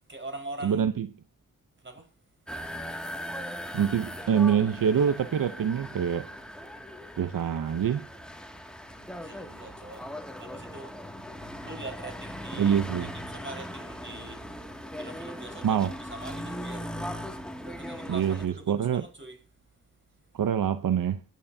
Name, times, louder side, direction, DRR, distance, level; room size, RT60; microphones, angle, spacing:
voice 1, 0.1-0.9 1.8-2.1 8.9-10.1 10.4-11.0 11.6-14.4 14.9-16.9 17.6-19.4, right 2 dB, 35° right, 4.8 m, -43 dB
voice 2, 0.6-1.1 3.7-6.3 7.2-8.1 12.6-13.1 15.6-15.9 18.1-19.0 20.3-21.2, right 8 dB, 70° right, 0.8 m, -25 dB
sound 1, 2.5-18.5, equal, ahead, 2.2 m, -39 dB
22.5 x 9.4 x 2.8 m
cardioid pair, 55°, 34 cm